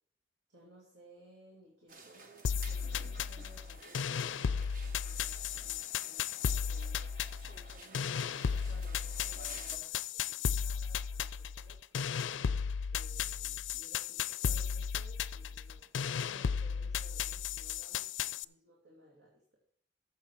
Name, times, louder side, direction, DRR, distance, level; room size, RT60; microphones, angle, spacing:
voice 1, 0.5-6.9 7.8-12.2 12.9-19.6, right 1 dB, 80° right, -4 dB, 2.8 m, -60 dB
sound 1, 1.9-9.8, right 3 dB, 45° right, 1.1 m, -53 dB
sound 2, 2.4-18.4, left 7 dB, 90° left, 0.4 m, -35 dB
14.0 x 7.1 x 4.6 m, 0.62 s
head